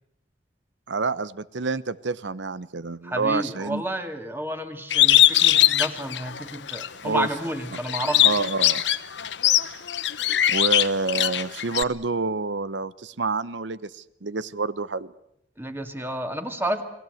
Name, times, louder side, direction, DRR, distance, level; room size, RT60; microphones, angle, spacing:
voice 1, 0.9-3.8 7.0-7.3 8.2-8.8 10.5-15.1, right 3 dB, 80° right, 17 dB, 0.9 m, -28 dB
voice 2, 3.0-8.4 15.6-16.8, right 1 dB, 10° right, 6 dB, 2.1 m, -30 dB
Bird, 4.9-6.9 7.3-11.8, left 13 dB, 75° left, 1.0 m, -20 dB
30.0 x 20.0 x 7.9 m, 0.79 s
head